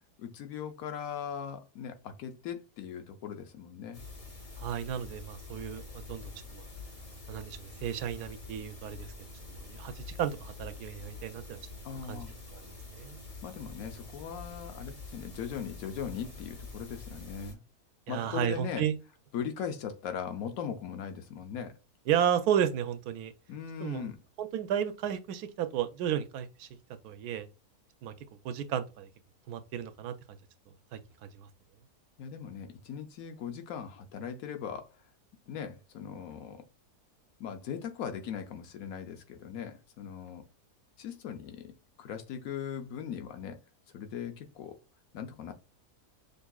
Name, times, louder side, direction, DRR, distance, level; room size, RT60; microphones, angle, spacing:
voice 1, 0.2-4.0 11.8-12.3 13.4-17.6 18.1-18.8 19.3-21.7 23.5-24.2 32.2-34.9 35.5-36.7 37.4-40.4 41.0-43.6 43.9-44.8 45.1-45.5, left 7 dB, 70° left, 1.1 m, -39 dB
sound 1, 3.9-17.5, left 3 dB, 30° left, 0.8 m, -46 dB
voice 2, 4.6-6.7 7.3-9.1 9.6-11.6 12.1-12.2 12.5-12.6 12.9-13.2 18.1-19.0 22.1-23.3 23.8-24.1 24.4-26.7 27.0-27.5 28.0-28.1 28.4-29.1 29.5-30.1 30.9-31.0 31.3-31.5, right 9 dB, 80° right, 1.1 m, -33 dB
6.5 x 2.7 x 2.3 m
omnidirectional pair, 1.6 m